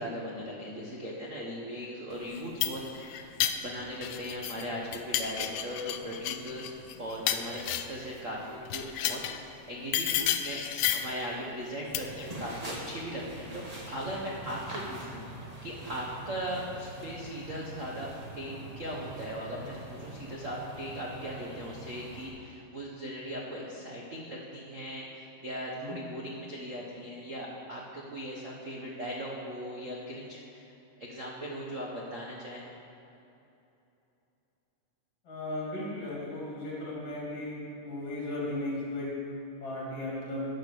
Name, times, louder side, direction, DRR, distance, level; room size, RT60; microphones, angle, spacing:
voice 1, 0.0-3.3 3.6-6.7 7.0-10.6 10.9-30.7 31.0-32.7, equal, 70° right, -4 dB, 0.7 m, -39 dB
sound 1, 2.3-4.6 4.9-8.1 8.7-9.4 9.9-11.2 11.9-12.3, left 10 dB, 85° left, 1.4 m, -32 dB
sound 2, 11.9-22.3, right 1 dB, 20° right, 1.0 m, -44 dB
voice 2, 35.3-39.1 39.6-40.5, left 1 dB, 55° left, -5 dB, 3.8 m, -36 dB
11.0 x 5.9 x 7.3 m, 2.9 s
omnidirectional pair, 3.4 m